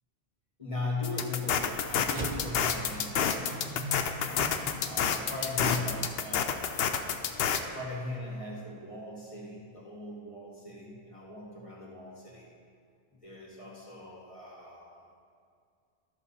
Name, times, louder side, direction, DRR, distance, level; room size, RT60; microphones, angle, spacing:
voice 1, 0.6-4.3 4.8-6.8 7.7-12.5 13.2-15.0, left 2 dB, 30° left, -3 dB, 1.9 m, -39 dB
sound 1, 1.0-7.6, left 7 dB, 75° left, 0.8 m, -29 dB
sound 2, 2.0-6.7, right 2 dB, 45° right, 0.9 m, -42 dB
13.0 x 6.1 x 4.1 m, 2.3 s
omnidirectional pair, 1.1 m